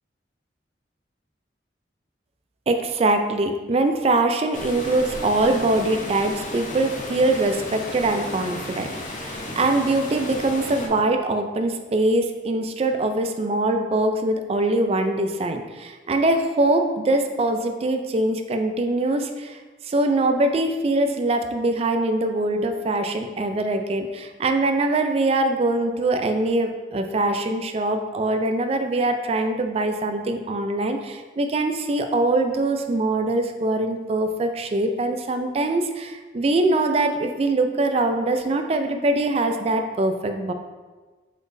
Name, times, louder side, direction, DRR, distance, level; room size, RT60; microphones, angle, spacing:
voice 1, 2.7-19.6 19.9-40.5, right 2 dB, 35° right, 6 dB, 0.3 m, -23 dB
Water, 4.5-10.9, left 1 dB, 45° left, 0.6 m, -34 dB
5.0 x 4.0 x 2.6 m, 1.3 s
head